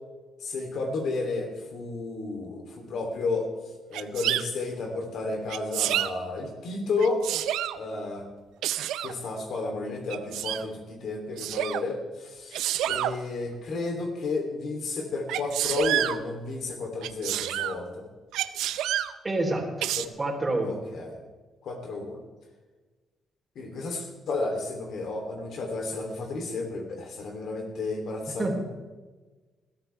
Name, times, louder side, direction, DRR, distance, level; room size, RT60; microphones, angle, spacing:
voice 1, 0.4-3.5 3.9-7.2 7.7-8.2 9.0-12.6 12.9-18.0 20.0-20.1 20.6-21.2 21.6-22.2 23.5-28.5, left 3 dB, 65° left, 3 dB, 3.2 m, -32 dB
Sneeze, 3.9-4.4 5.5-6.1 7.0-7.8 8.6-9.1 10.1-10.6 11.4-11.8 12.5-13.1 15.3-16.2 17.0-17.8 18.3-19.1 19.8-20.1, right 12 dB, 90° right, 0.5 m, -28 dB
voice 2, 19.2-19.9 20.2-20.8 28.4-28.5, right 2 dB, 25° right, 1 dB, 3.6 m, -27 dB
20.5 x 13.5 x 3.5 m, 1.3 s
cardioid pair, 90°, 0 cm